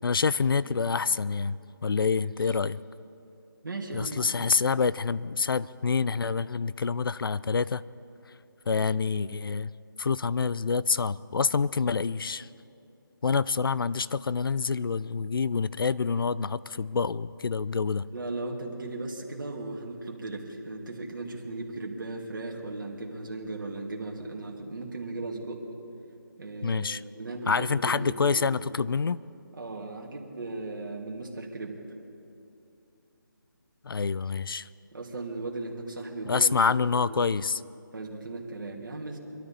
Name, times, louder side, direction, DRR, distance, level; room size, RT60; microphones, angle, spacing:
voice 1, 0.0-2.8 3.9-7.8 8.7-9.7 10.0-12.5 13.2-18.1 26.6-27.0 27.5-29.2 33.8-34.7 36.3-37.6, left 5 dB, 75° left, 18 dB, 0.4 m, -27 dB
voice 2, 3.6-4.3 4.6-4.7 18.1-25.6 26.4-28.6 29.6-31.8 34.9-36.7 37.0-37.3 37.9-39.2, right 2 dB, 60° right, -1 dB, 2.3 m, -37 dB
23.5 x 13.0 x 4.2 m, 2.7 s
figure-of-eight pair, 165°, 12 cm